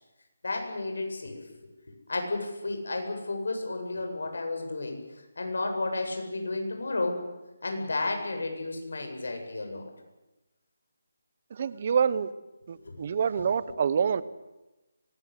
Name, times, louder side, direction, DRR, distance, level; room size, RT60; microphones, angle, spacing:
voice 1, 0.4-1.4 2.1-7.2 7.6-9.9 12.7-13.1, left 2 dB, 80° left, 4 dB, 8.0 m, -32 dB
voice 2, 11.5-12.3 12.7-14.2, right 7 dB, 35° right, 18 dB, 1.0 m, -26 dB
25.0 x 21.0 x 8.4 m, 1.1 s
hypercardioid pair, 170°, 0 cm